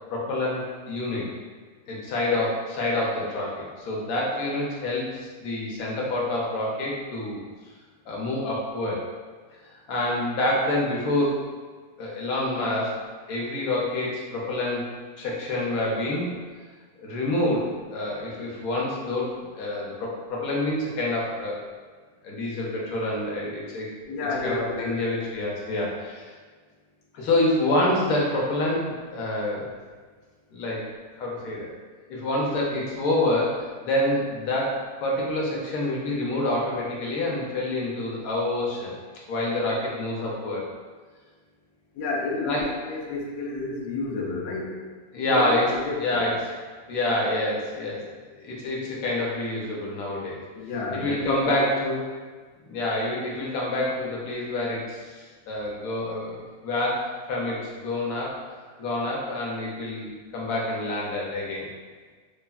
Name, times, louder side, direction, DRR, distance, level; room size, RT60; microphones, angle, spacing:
voice 1, 0.1-1.3 1.9-7.4 8.1-9.0 9.9-11.4 12.0-12.9 13.3-14.9 15.2-16.3 17.0-21.6 22.2-23.9 24.4-26.3 27.1-29.7 30.5-30.9 31.2-31.7 32.1-38.9 39.3-40.6 42.4-42.7 45.1-45.7 46.0-46.3 46.9-48.1 48.4-50.4 51.0-52.0 52.7-58.4 58.8-61.7, left 1 dB, 70° left, -3 dB, 1.0 m, -27 dB
voice 2, 24.1-25.2 41.9-44.7 45.3-46.2 50.5-51.7, left 3 dB, 85° left, -2 dB, 0.5 m, -31 dB
3.2 x 2.0 x 2.3 m, 1.5 s
omnidirectional pair, 1.7 m